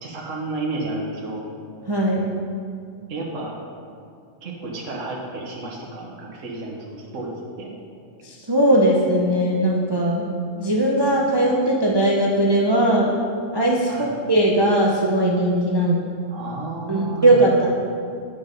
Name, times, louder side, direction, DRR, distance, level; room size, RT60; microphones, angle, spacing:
voice 1, 0.0-1.4 3.1-3.5 4.4-7.3 7.6-7.7 13.9-14.1 16.3-17.6, right 2 dB, 75° right, -3 dB, 1.5 m, -31 dB
voice 2, 1.9-2.3 8.2-10.2 10.6-13.2 13.5-16.0 16.9-17.7, right 1 dB, 25° right, -3 dB, 0.7 m, -19 dB
9.5 x 6.0 x 5.2 m, 2.3 s
omnidirectional pair, 1.3 m